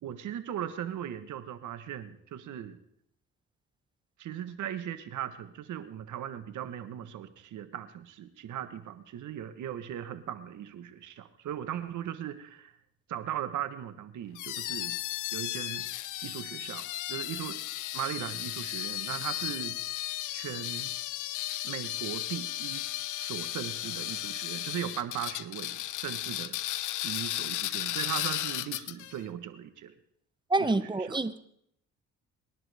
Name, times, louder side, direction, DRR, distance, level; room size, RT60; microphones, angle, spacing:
voice 1, 0.0-2.8 4.2-12.7 13.1-15.0 15.3-15.8 16.2-17.6 17.9-19.8 20.3-20.9 21.6-22.8 23.2-26.6 27.0-29.9 30.6-31.2, right 10 dB, 75° right, 11 dB, 1.4 m, -38 dB
sound 1, 14.3-29.2, left 15 dB, 85° left, 0.7 m, -35 dB
voice 2, 30.5-31.4, right 2 dB, 15° right, 12 dB, 1.0 m, -27 dB
25.5 x 11.0 x 3.6 m, 0.69 s
cardioid pair, 90°, 30 cm